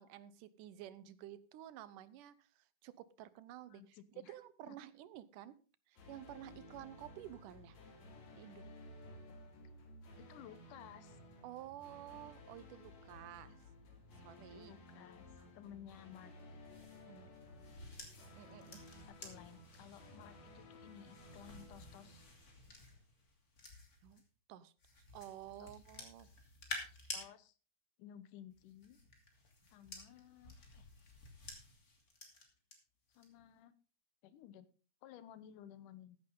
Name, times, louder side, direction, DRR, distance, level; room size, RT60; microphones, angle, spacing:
voice 1, 0.0-4.0 4.3-5.6 5.9-7.8 8.3-8.7 11.4-13.6 14.2-14.7 15.4-15.5 17.1-17.3 18.3-18.8 24.0-24.2 24.5-24.7 25.1-26.3, right 12 dB, 90° right, 16 dB, 2.4 m, -52 dB
voice 2, 3.7-4.3 4.7-4.8 10.2-11.2 14.5-15.3 15.5-16.3 19.1-22.3 25.6-25.7 27.1-27.6 28.0-29.0 29.7-30.9 33.2-33.7 34.2-34.7 35.0-36.2, left 10 dB, 80° left, 14 dB, 2.5 m, -56 dB
sound 1, 6.0-23.0, left 1 dB, 60° left, 4.0 m, -56 dB
sound 2, 16.7-24.2 24.8-27.3 28.5-32.7 33.1-33.5, left 2 dB, 30° left, 2.9 m, -52 dB
14.5 x 10.5 x 3.8 m, 0.35 s
omnidirectional pair, 3.6 m